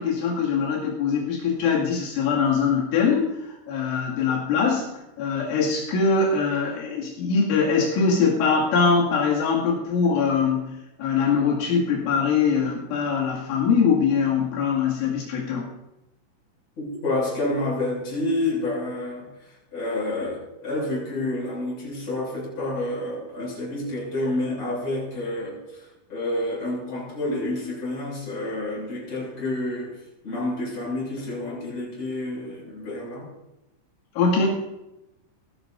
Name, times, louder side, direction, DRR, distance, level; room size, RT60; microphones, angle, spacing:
voice 1, 0.0-10.7 11.0-15.6 34.2-34.5, left 5 dB, 90° left, -4 dB, 4.8 m, -22 dB
voice 2, 16.8-33.3, left 2 dB, 35° left, -4 dB, 7.6 m, -29 dB
20.5 x 16.5 x 2.7 m, 0.97 s
omnidirectional pair, 5.4 m